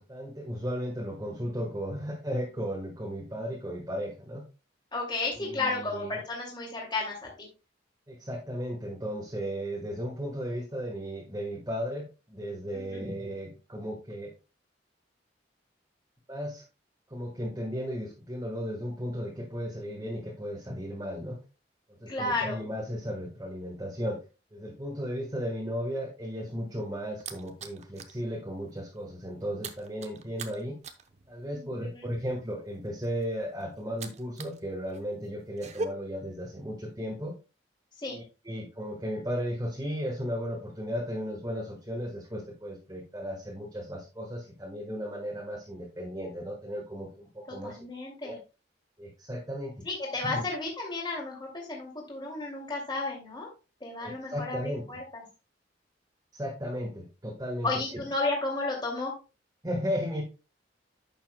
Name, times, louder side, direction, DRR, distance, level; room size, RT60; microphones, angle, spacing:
voice 1, 0.0-4.4 5.4-6.2 8.1-14.3 16.3-16.6 17.1-21.4 21.9-24.2 24.5-30.8 31.3-37.3 38.1-47.8 48.2-48.3 49.0-49.9 50.2-50.4 54.0-54.8 56.3-58.0 59.6-60.2, equal, 20° right, -2 dB, 1.4 m, -35 dB
voice 2, 4.9-7.5 12.7-13.0 22.1-22.6 31.5-32.1 38.0-38.2 47.5-48.4 49.8-53.5 53.8-55.2 57.6-59.2, left 3 dB, 25° left, -2 dB, 2.4 m, -33 dB
sound 1, 26.4-28.2 28.6-28.8 29.0-34.6 34.9-35.9, right 3 dB, 40° right, 0.8 m, -41 dB
11.0 x 7.0 x 2.2 m, 0.31 s
head